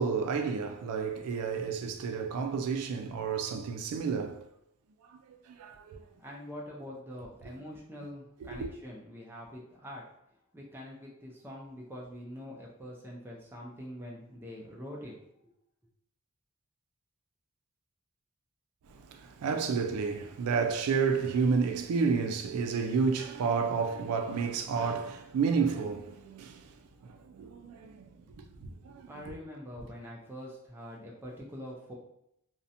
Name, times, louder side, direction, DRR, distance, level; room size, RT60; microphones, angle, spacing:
voice 1, 0.0-4.4 5.1-6.0 18.9-28.1 28.6-29.4, right 5 dB, 80° right, 0.3 m, -31 dB
voice 2, 6.2-10.0 10.5-15.2 29.1-31.9, equal, 10° right, 0.4 m, -44 dB
2.7 x 2.1 x 2.5 m
head